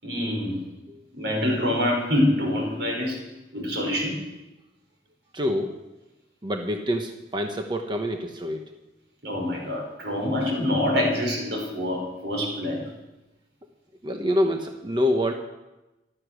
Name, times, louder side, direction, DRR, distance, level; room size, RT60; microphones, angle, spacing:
voice 1, 0.0-0.6 1.1-3.2 3.5-4.2 9.2-12.9, left 1 dB, 85° right, 0 dB, 5.9 m, -25 dB
voice 2, 5.3-5.7 6.4-8.8 14.0-15.3, equal, 25° right, 4 dB, 1.1 m, -26 dB
14.5 x 12.0 x 6.4 m, 1.0 s
head